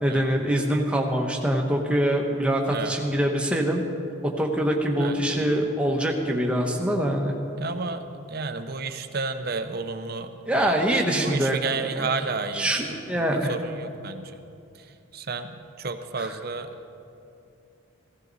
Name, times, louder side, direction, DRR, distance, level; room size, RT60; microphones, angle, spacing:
voice 1, 0.0-3.8 4.2-7.3 10.5-12.1 12.5-13.5 16.2-16.3, right 1 dB, 5° right, 0 dB, 1.1 m, -24 dB
voice 2, 5.0-5.7 7.6-14.4 14.8-14.9 15.1-16.7, right 3 dB, 45° right, 8 dB, 0.7 m, -32 dB
16.0 x 15.0 x 4.1 m, 2.7 s
head